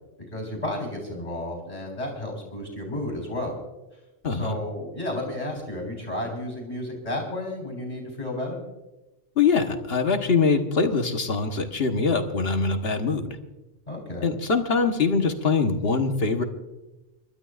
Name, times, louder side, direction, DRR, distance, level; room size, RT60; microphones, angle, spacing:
voice 1, 0.3-3.6 4.3-8.6 13.9-14.3, left 1 dB, 35° left, 0 dB, 4.0 m, -32 dB
voice 2, 4.2-4.6 9.4-13.4 14.2-16.4, left 4 dB, 60° left, 5 dB, 1.5 m, -23 dB
29.5 x 12.5 x 2.5 m, 1.0 s
omnidirectional pair, 1.2 m